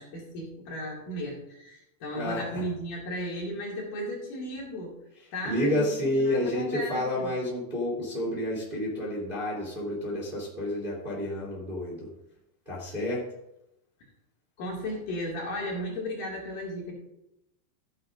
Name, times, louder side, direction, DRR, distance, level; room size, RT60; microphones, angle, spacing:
voice 1, 0.0-5.0 5.3-5.9 6.2-7.3 14.6-16.9, equal, 55° left, -3 dB, 3.6 m, -35 dB
voice 2, 2.1-2.6 5.2-12.1 12.6-13.2, left 1 dB, 15° right, -5 dB, 2.4 m, -30 dB
15.0 x 9.5 x 2.6 m, 0.87 s
omnidirectional pair, 4.8 m